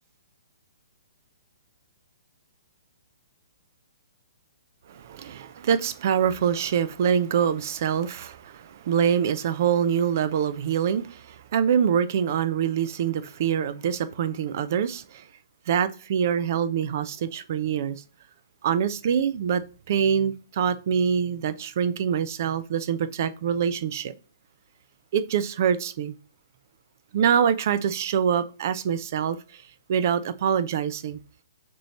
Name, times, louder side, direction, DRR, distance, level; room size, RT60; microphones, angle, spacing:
voice 1, 4.9-15.3 15.7-18.0 18.6-24.1 25.1-26.1 27.1-29.6 29.9-31.2, right 8 dB, 50° right, 0.4 m, -25 dB
6.0 x 3.0 x 2.9 m
figure-of-eight pair, 125°, 2 cm